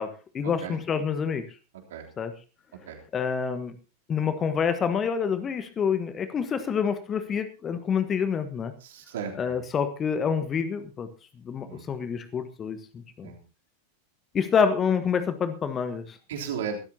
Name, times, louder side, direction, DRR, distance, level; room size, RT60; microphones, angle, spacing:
voice 1, 0.0-1.5 2.2-2.3 3.1-3.7 4.1-8.7 9.3-11.1 11.4-13.3 14.3-16.2, left 6 dB, 25° left, 11 dB, 1.4 m, -27 dB
voice 2, 8.8-9.6 11.7-11.9 13.2-13.4 16.3-16.8, right 7 dB, 60° right, 2 dB, 3.4 m, -35 dB
22.5 x 13.5 x 2.9 m, 0.31 s
figure-of-eight pair, 90°, 0 cm